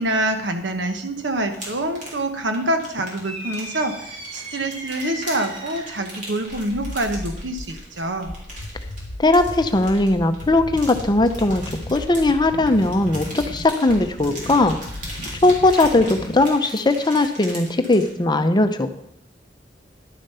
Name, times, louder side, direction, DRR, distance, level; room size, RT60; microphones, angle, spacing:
voice 1, 0.0-8.3, right 1 dB, 80° right, 6 dB, 1.2 m, -26 dB
sound 1, 1.5-18.1, right 1 dB, 45° right, 3.4 m, -39 dB
sound 2, 3.2-6.1, equal, 30° right, 1.9 m, -36 dB
sound 3, 6.5-16.5, left 1 dB, 70° left, 0.9 m, -35 dB
voice 2, 9.2-14.8 15.4-18.9, left 2 dB, 25° left, 8 dB, 0.7 m, -19 dB
11.0 x 7.1 x 5.6 m, 0.79 s
head